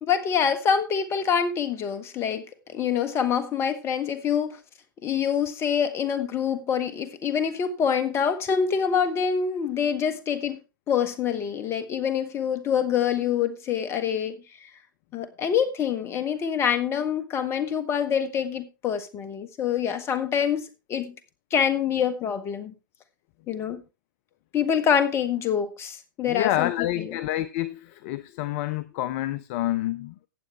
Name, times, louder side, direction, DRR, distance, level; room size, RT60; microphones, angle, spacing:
voice 1, 0.0-2.4 2.7-4.6 5.0-10.6 10.9-14.4 14.6-14.7 15.1-21.1 21.5-22.7 23.5-23.8 24.5-27.2, left 7 dB, 25° left, 1.5 m, -26 dB
voice 2, 26.2-30.3, left 14 dB, 40° left, 0.6 m, -28 dB
15.0 x 8.5 x 3.3 m
figure-of-eight pair, 110°, 11 cm